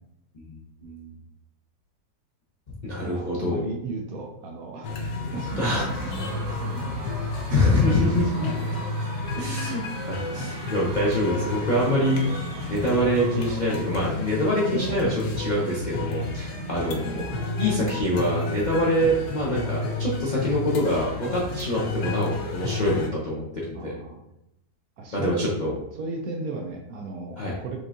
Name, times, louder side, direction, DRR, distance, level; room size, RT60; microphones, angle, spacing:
voice 1, 0.3-1.1 2.8-3.6 5.6-5.9 7.5-8.5 9.3-17.2 17.6-24.0 25.1-25.7 27.4-27.5, left 1 dB, 50° left, -6 dB, 0.5 m, -25 dB
voice 2, 3.0-8.8 10.3-10.5 14.7-15.0 23.7-24.2 25.0-25.5 26.0-27.8, right 3 dB, 70° right, 2 dB, 0.9 m, -35 dB
sound 1, 4.8-23.1, left 2 dB, 70° left, 1.1 m, -31 dB
Screaming / Cheering / Crowd, 5.4-14.0, right 1 dB, 45° right, 1.1 m, -41 dB
5.2 x 3.4 x 2.6 m, 0.85 s
omnidirectional pair, 1.8 m